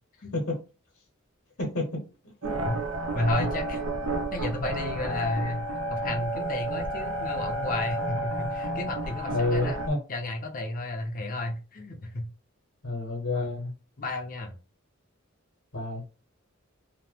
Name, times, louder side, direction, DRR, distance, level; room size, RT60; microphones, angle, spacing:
voice 1, 1.6-2.0 2.4-2.5 3.4-3.5 9.3-10.0 12.8-13.7 15.7-16.0, left 2 dB, 65° left, -1 dB, 1.0 m, -29 dB
sound 1, 2.4-9.9, right 1 dB, 75° right, 0.5 m, -31 dB
voice 2, 3.1-3.8 4.3-5.6 5.9-9.8 10.1-12.2 13.3-13.5 14.0-14.5, left 2 dB, 40° left, 4 dB, 0.6 m, -32 dB
2.9 x 2.1 x 3.3 m, 0.32 s
head